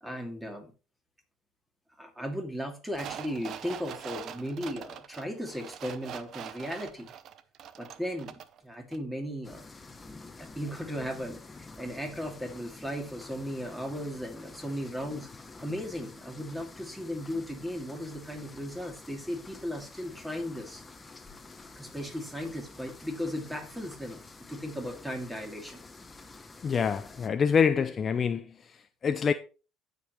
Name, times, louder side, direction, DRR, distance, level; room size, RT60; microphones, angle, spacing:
voice 1, 0.0-0.7 2.0-7.1 7.8-9.6 10.4-15.3 15.6-20.8 21.8-24.2 24.5-25.9, equal, 5° right, 2.6 m, -36 dB
sound 1, 2.9-8.6 8.9-9.0, right 9 dB, 55° right, 0.7 m, -43 dB
sound 2, 9.4-27.3, left 3 dB, 20° left, 1.0 m, -49 dB
voice 2, 26.6-29.3, left 6 dB, 35° left, 0.6 m, -26 dB
15.5 x 5.3 x 3.1 m
cardioid pair, 110°, 0 cm